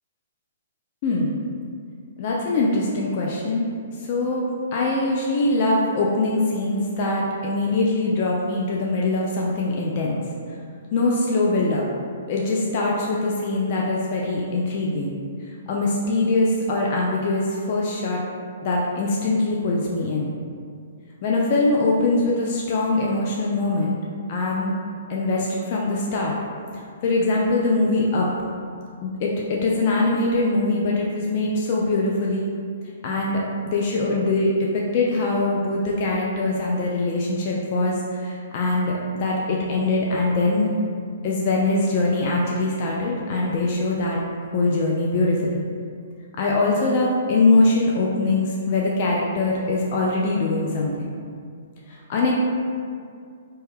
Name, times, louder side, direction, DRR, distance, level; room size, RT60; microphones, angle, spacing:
voice 1, 1.0-1.4 2.2-3.7 4.0-4.4 4.7-10.2 10.9-11.8 12.3-15.2 15.7-18.2 18.6-20.3 21.2-24.0 24.3-24.7 25.1-26.3 27.0-28.3 29.0-32.5 33.0-40.8 41.2-44.2 44.5-45.6 46.4-51.1 51.9-52.4, left 2 dB, 45° left, -3 dB, 0.3 m, -22 dB
2.1 x 2.1 x 3.2 m, 2.2 s
hypercardioid pair, 130°, 0 cm